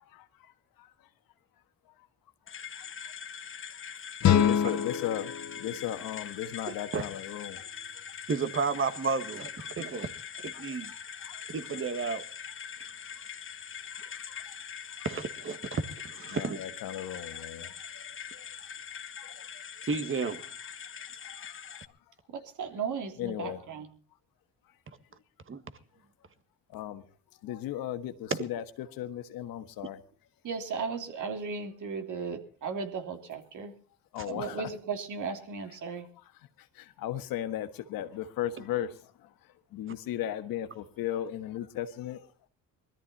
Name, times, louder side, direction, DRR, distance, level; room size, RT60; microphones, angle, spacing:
sound 1, 2.5-21.9, left 7 dB, 35° left, 1.2 m, -43 dB
voice 1, 4.0-5.3 5.6-7.7 9.6-9.7 10.5-11.4 13.9-14.5 16.3-18.7 19.2-19.6 21.2-21.8 23.2-23.6 26.7-27.0 27.4-30.0 34.1-34.7 36.6-39.3 39.7-42.3, left 11 dB, 90° left, 1.5 m, -37 dB
sound 2, 4.2-7.2, left 9 dB, 55° left, 0.9 m, -28 dB
voice 2, 8.3-10.1 10.4-10.9 11.5-12.2 15.0-16.6 19.9-20.4 25.5-25.6, right 5 dB, 35° right, 1.8 m, -32 dB
voice 3, 22.3-23.9 30.4-33.7 34.2-36.1, right 5 dB, 60° right, 3.3 m, -36 dB
20.5 x 13.5 x 4.1 m
cardioid pair, 95°, 34 cm